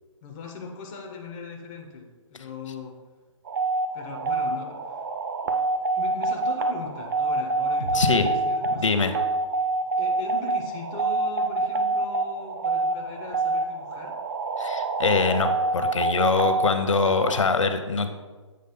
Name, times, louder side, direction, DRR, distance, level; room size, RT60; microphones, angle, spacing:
voice 1, 0.2-3.0 3.9-5.0 6.0-8.9 10.0-14.2, left 4 dB, 10° left, 1 dB, 0.3 m, -39 dB
sound 1, 3.5-17.4, right 3 dB, 40° right, 0.5 m, -26 dB
sound 2, 7.8-11.7 12.1-12.2, right 2 dB, 80° right, 0.8 m, -43 dB
voice 2, 7.9-8.3 8.8-9.2 14.6-18.1, left 4 dB, 70° left, 8 dB, 0.6 m, -23 dB
7.7 x 3.1 x 4.0 m, 1.3 s
figure-of-eight pair, 140°, 17 cm